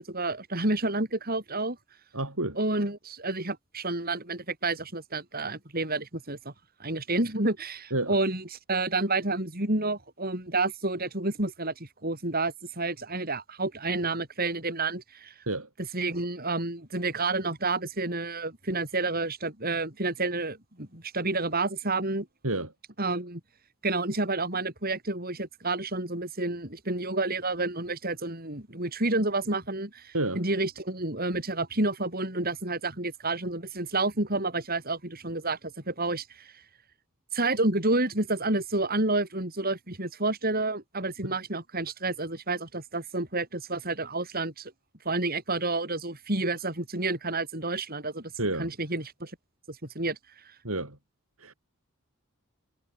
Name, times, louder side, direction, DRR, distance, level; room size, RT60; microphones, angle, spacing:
voice 1, 0.0-1.8 2.6-6.5 6.8-15.3 15.9-22.3 23.0-23.4 23.8-36.5 37.3-44.7 45.0-48.3 48.6-49.3 49.7-50.2, right 2 dB, 45° right, 7.7 m, -30 dB
voice 2, 2.1-2.6 7.9-8.2 15.5-15.7 22.4-22.7 30.1-30.4 41.2-41.4 48.4-48.7 50.6-51.0 51.4-51.5, right 2 dB, 75° right, 7.4 m, -30 dB
head